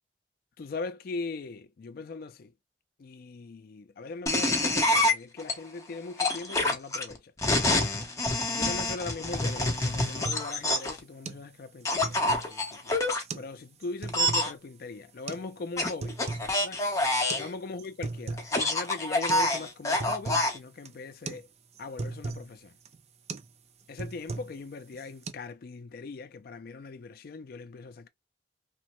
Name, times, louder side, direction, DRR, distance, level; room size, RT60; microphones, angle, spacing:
voice 1, 0.6-2.5 3.0-7.2 7.7-8.1 8.5-13.0 13.3-16.2 16.6-16.8 17.4-21.5 21.8-22.7 23.9-28.1, left 3 dB, 55° left, 0.4 m, -40 dB
sound 1, 4.3-5.5 6.2-11.0 11.8-13.2 14.1-14.5 15.8-17.5 18.4-20.6, left 1 dB, 20° left, 0.8 m, -27 dB
sound 2, 9.3-9.5 9.8-10.5 10.8-10.9 11.2-11.4 11.8-12.6 13.2-13.5 13.8-14.5 15.3-15.4 15.8-16.5 16.8-16.9 17.3-17.5 17.8-18.5 18.8-18.9 19.3-19.5 19.8-20.5 20.8-21.0 21.3-21.4 21.7-22.5 22.8-23.0 23.3-23.5 23.8-24.6 24.9-25.3, right 3 dB, 40° right, 0.4 m, -38 dB
3.0 x 2.1 x 2.9 m
head